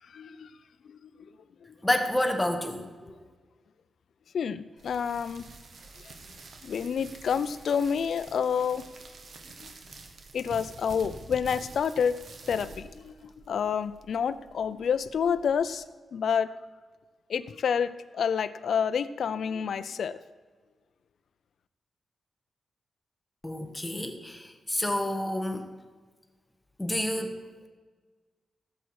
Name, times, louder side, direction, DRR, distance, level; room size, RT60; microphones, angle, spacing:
voice 1, 0.1-0.5 0.9-1.3 4.3-5.5 6.1-6.2 6.6-8.9 9.6-9.7 10.3-12.2 12.5-15.8 16.1-16.5 17.3-20.2, left 7 dB, 75° left, 12 dB, 0.5 m, -29 dB
voice 2, 1.8-3.1 23.4-25.7 26.8-27.4, left 1 dB, 10° left, 5 dB, 1.4 m, -29 dB
sound 1, 4.8-15.7, right 3 dB, 60° right, 1.5 m, -48 dB
17.0 x 8.1 x 4.8 m, 1.4 s
wide cardioid pair, 115°, 0 cm